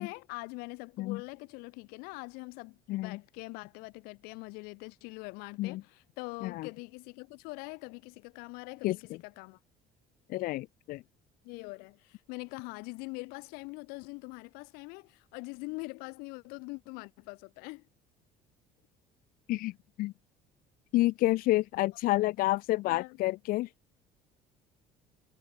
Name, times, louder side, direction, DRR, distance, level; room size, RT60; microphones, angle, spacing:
voice 1, 0.0-9.6 11.4-17.8 22.9-23.2, left 28 dB, 90° left, 4.8 m, -43 dB
voice 2, 10.3-11.0 19.5-19.7 20.0-20.1 20.9-23.7, left 18 dB, 70° left, 3.1 m, -29 dB
cardioid pair, 125°, 15 cm